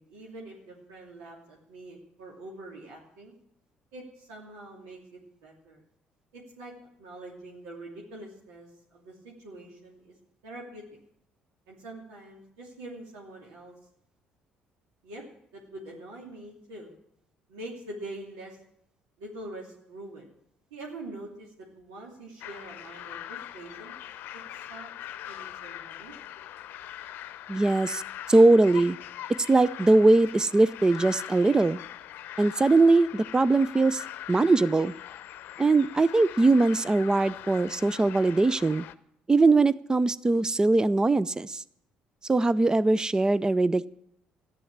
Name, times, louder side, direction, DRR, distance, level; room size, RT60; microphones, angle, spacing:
voice 1, 0.0-3.3 3.9-5.8 6.3-10.2 10.4-10.8 11.7-13.7 15.0-15.2 15.5-16.9 17.5-18.6 19.2-20.3 20.7-23.9 24.3-24.4 24.7-24.9 25.2-26.1, right 1 dB, 90° right, -3 dB, 2.7 m, -44 dB
sound 1, 22.4-38.9, left 12 dB, 70° left, 0.7 m, -42 dB
voice 2, 27.5-28.0 28.3-29.0 29.5-31.8 32.4-34.0 34.3-34.9 35.6-38.8 39.3-41.6 42.3-43.9, right 2 dB, 20° right, 17 dB, 0.5 m, -21 dB
13.5 x 11.0 x 7.3 m, 0.74 s
supercardioid pair, 65°, 4 cm